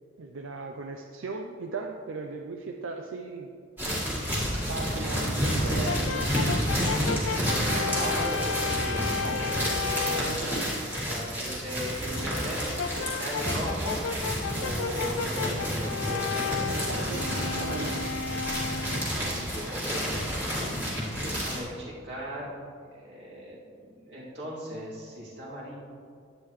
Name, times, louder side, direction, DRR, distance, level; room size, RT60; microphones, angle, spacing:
voice 1, 0.2-3.5 4.7-6.7 10.3-10.6 16.7-18.0, right 4 dB, 85° right, 3 dB, 0.5 m, -38 dB
sound 1, 3.8-21.6, equal, 10° right, 1.9 m, -30 dB
voice 2, 4.4-4.8 7.3-10.4 11.0-12.6 12.9-14.1 14.6-16.7 18.9-22.5 22.8-23.6 23.8-25.8, equal, 55° right, -6 dB, 2.5 m, -38 dB
Brass instrument, 5.8-10.4 12.8-19.1, left 6 dB, 80° left, 0.4 m, -33 dB
11.0 x 8.5 x 3.1 m, 2.3 s
head